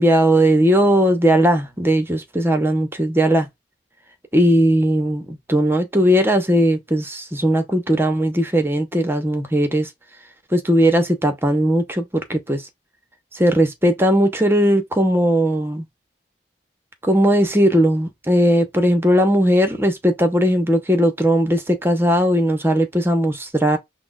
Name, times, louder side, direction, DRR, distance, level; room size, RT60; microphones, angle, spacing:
voice 1, 0.0-3.5 4.3-9.9 10.5-12.6 13.3-15.8 17.0-23.8, equal, 15° right, 0.8 m, -18 dB
5.9 x 2.1 x 2.3 m
head